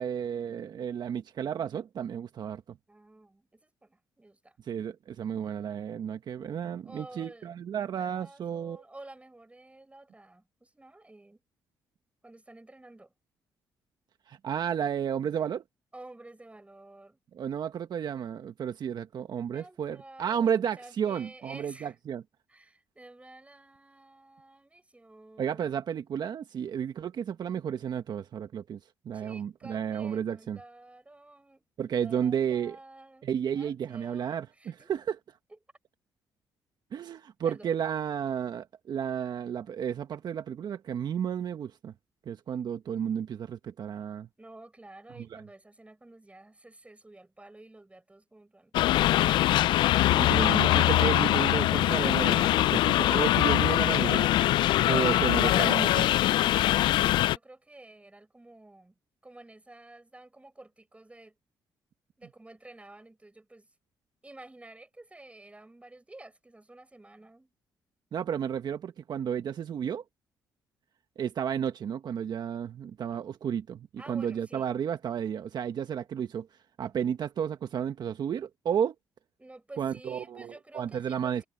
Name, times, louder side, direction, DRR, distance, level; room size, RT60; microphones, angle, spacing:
voice 1, 0.0-2.8 4.6-8.8 14.3-15.6 17.3-22.2 25.4-28.8 29.0-30.6 31.8-32.8 33.2-35.2 36.9-41.9 42.2-44.3 45.2-45.4 50.1-54.3 54.8-56.0 68.1-70.0 71.2-76.5 76.8-78.9 79.8-81.4, right 8 dB, 60° right, 1.4 m, -32 dB
voice 2, 2.9-4.6 6.8-7.5 7.9-11.4 12.2-13.1 15.9-17.2 19.5-21.9 22.5-25.8 29.1-31.7 32.0-34.9 35.5-35.6 37.4-37.8 44.4-48.7 49.0-49.7 55.0-59.0 59.2-61.3 62.2-63.7 64.2-67.5 74.0-74.7 79.4-81.4, right 2 dB, 15° right, 6.5 m, -50 dB
sound 1, 48.7-57.4, left 14 dB, 75° left, 0.3 m, -23 dB
supercardioid pair, 65°, 8 cm